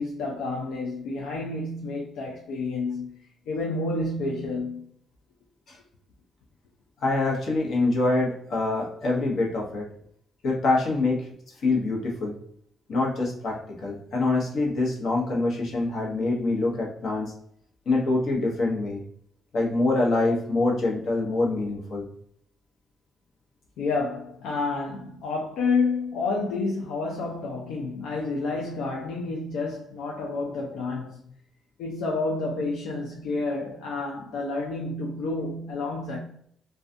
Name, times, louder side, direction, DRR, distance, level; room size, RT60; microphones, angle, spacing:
voice 1, 0.0-3.1 3.5-4.8 23.8-31.2 31.8-36.2, left 3 dB, 85° left, 0.4 m, -29 dB
voice 2, 7.0-9.9 10.4-11.3 11.6-12.4 12.9-17.3 17.9-19.0 19.5-22.1, left 2 dB, 65° left, 0.9 m, -25 dB
2.4 x 2.2 x 2.5 m
cardioid pair, 90°, 0 cm